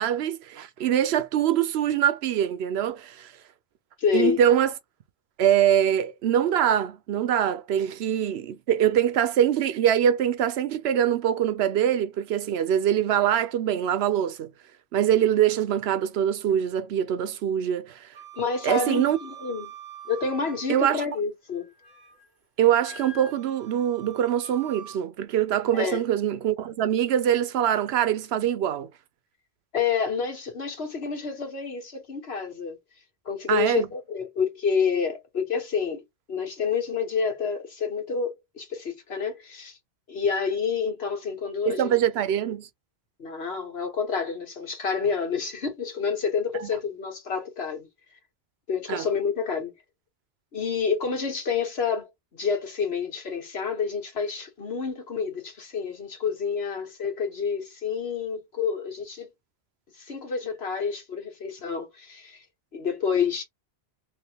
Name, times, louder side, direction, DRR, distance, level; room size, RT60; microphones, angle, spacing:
voice 1, 0.0-3.3 4.1-4.7 5.4-14.5 14.9-18.1 18.6-19.2 20.7-21.0 22.6-28.9 33.5-33.9 41.7-42.7 46.6-46.7 48.9-49.1, right 10 dB, 90° right, 0.9 m, -23 dB
voice 2, 4.0-4.4 18.4-19.7 20.1-21.7 25.7-26.0 29.7-32.8 33.2-39.8 40.1-41.9 43.2-47.9 48.7-49.7 50.5-59.3 60.0-62.4 62.7-63.4, left 6 dB, 85° left, 1.6 m, -28 dB
Wind instrument woodwind instrument, 18.1-21.1 21.5-22.3 22.8-25.0, right 5 dB, 50° right, 1.4 m, -45 dB
3.4 x 2.9 x 2.8 m
omnidirectional pair, 1.0 m